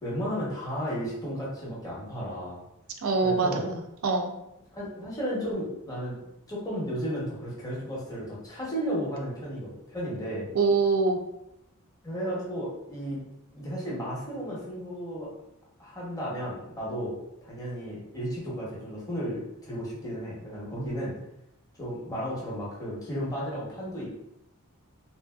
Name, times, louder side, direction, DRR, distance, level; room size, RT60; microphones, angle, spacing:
voice 1, 0.0-2.6 3.2-3.6 4.7-6.1 6.5-10.5 12.0-13.2 13.5-15.3 15.8-17.1 17.4-21.1 21.8-24.1, equal, 15° left, -6 dB, 0.9 m, -33 dB
voice 2, 3.0-4.3 10.5-11.2, right 4 dB, 70° right, 4 dB, 0.4 m, -24 dB
3.0 x 2.6 x 2.3 m, 0.85 s
head